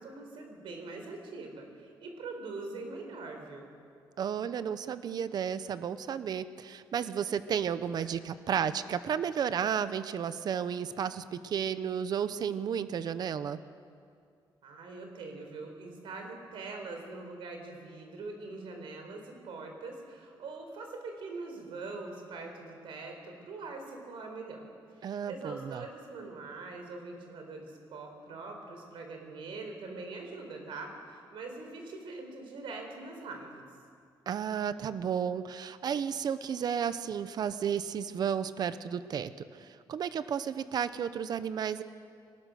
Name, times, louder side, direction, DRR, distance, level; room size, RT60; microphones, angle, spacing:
voice 1, 0.0-3.7 8.0-8.1 14.6-24.6 25.0-33.7, right 3 dB, 85° right, 3 dB, 4.2 m, -43 dB
voice 2, 4.2-13.6 25.0-25.8 34.3-41.8, right 8 dB, 50° right, 13 dB, 0.8 m, -33 dB
23.0 x 19.5 x 6.4 m, 2.3 s
wide cardioid pair, 165°, 9 cm